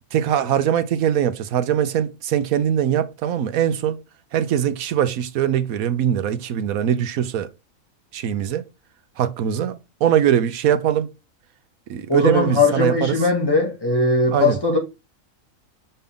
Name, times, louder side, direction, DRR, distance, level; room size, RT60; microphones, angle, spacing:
voice 1, 0.1-4.0 4.3-7.5 8.1-8.6 9.2-11.1 11.9-13.2 14.3-14.6, right 9 dB, 85° right, 1.2 m, -21 dB
voice 2, 12.1-14.8, left 3 dB, 15° left, 2.3 m, -19 dB
5.6 x 5.6 x 3.5 m
omnidirectional pair, 1.4 m